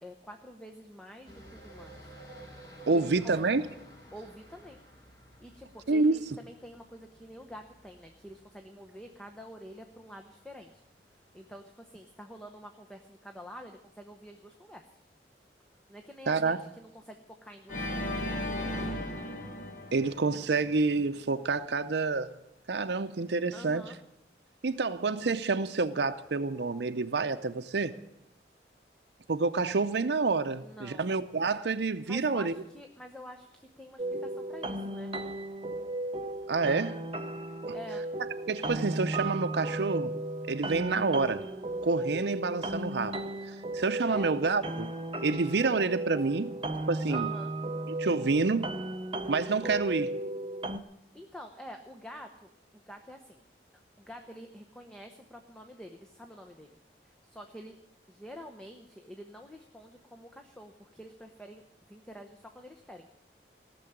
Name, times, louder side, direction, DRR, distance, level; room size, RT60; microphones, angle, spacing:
voice 1, 0.0-2.1 2.9-3.4 4.1-4.8 5.4-10.8 11.3-15.0 15.9-19.0 23.5-24.0 30.6-31.1 32.1-35.1 37.7-38.1 44.1-44.3 47.1-47.5 51.1-53.4 54.0-56.8 57.0-57.8 58.1-61.6 61.9-63.1, equal, 5° left, 0.8 m, -48 dB
sound 1, 1.2-11.6, right 1 dB, 25° left, 3.4 m, -54 dB
voice 2, 2.9-3.7 5.9-6.2 16.3-16.6 19.9-22.3 22.7-23.9 24.6-27.9 29.3-32.5 36.5-37.0 37.7-37.8 38.5-40.1 40.5-41.5 41.8-43.2 43.7-44.9 45.2-46.6 46.9-47.3 48.0-48.7 49.3-50.2, right 4 dB, 75° right, 0.6 m, -28 dB
Organ, 17.7-20.8, left 1 dB, 45° left, 1.5 m, -35 dB
sound 2, 34.0-50.8, right 2 dB, 30° right, 0.7 m, -35 dB
17.5 x 6.9 x 9.9 m
head